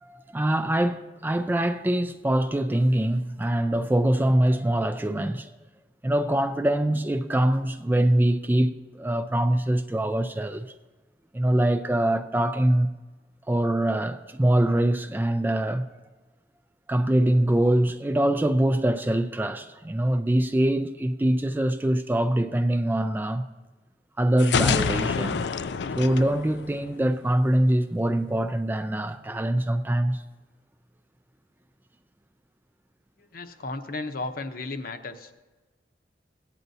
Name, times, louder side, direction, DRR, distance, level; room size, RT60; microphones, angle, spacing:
voice 1, 0.0-5.5 6.0-10.7 11.3-12.9 13.5-15.9 16.9-23.4 24.2-25.5 26.0-30.2, right 1 dB, 10° right, 0.3 m, -23 dB
sound 1, 24.4-27.2, left 5 dB, 75° left, 0.4 m, -27 dB
voice 2, 33.3-35.4, left 3 dB, 55° left, 0.8 m, -34 dB
17.0 x 9.1 x 2.7 m
head